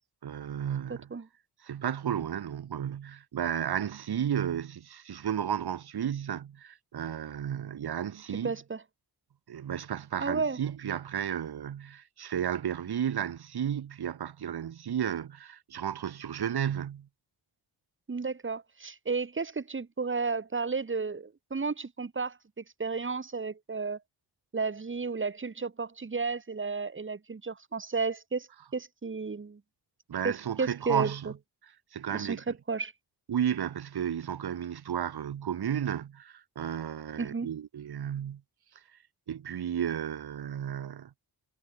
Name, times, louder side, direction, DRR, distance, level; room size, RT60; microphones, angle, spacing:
voice 1, 0.2-1.1 1.6-8.5 9.5-17.1 30.1-31.3 31.9-32.4 33.3-38.4 39.3-41.1, right 9 dB, 60° right, 1.5 m, -33 dB
voice 2, 0.9-1.3 8.4-8.8 10.2-10.6 18.1-24.0 24.5-29.6 30.2-31.1 32.1-32.9 37.2-37.5, right 4 dB, 30° right, 2.4 m, -33 dB
wide cardioid pair, 140°, 42 cm